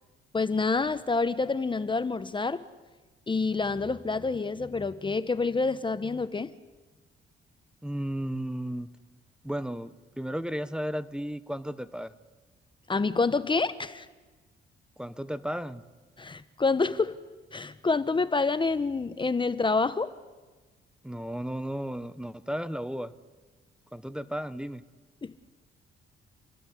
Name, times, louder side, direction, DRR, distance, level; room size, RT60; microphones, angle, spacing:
voice 1, 0.3-2.6 3.3-6.5 12.9-14.1 16.2-17.1 17.5-20.1 25.2-25.3, left 4 dB, 25° left, 13 dB, 1.1 m, -27 dB
voice 2, 7.8-8.9 9.4-12.1 15.0-15.8 21.0-23.1 23.9-24.8, equal, 5° right, 14 dB, 1.2 m, -34 dB
29.0 x 21.5 x 9.6 m, 1.3 s
cardioid pair, 90°, 20 cm